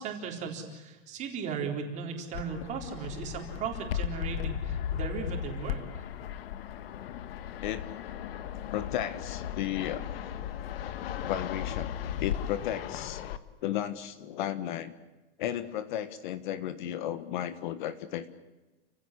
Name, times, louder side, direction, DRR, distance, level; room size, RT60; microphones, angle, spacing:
voice 1, 0.0-6.1, right 6 dB, 20° right, 3 dB, 4.0 m, -37 dB
Fixed-wing aircraft airplane, 2.3-13.4, left 10 dB, 65° left, 1.7 m, -36 dB
voice 2, 8.7-10.0 11.2-13.2 13.6-14.9 15.4-18.3, left 11 dB, 50° left, 13 dB, 1.4 m, -34 dB
30.0 x 16.5 x 10.0 m, 1.1 s
supercardioid pair, 175°, 32 cm